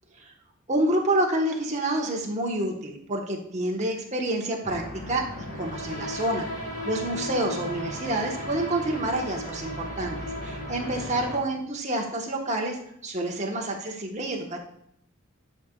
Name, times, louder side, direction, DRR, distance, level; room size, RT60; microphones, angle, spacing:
voice 1, 0.7-14.7, right 1 dB, 35° right, 0 dB, 1.2 m, -28 dB
sound 1, 4.6-11.4, left 1 dB, 40° left, 2.5 m, -35 dB
10.5 x 5.2 x 2.4 m, 0.75 s
head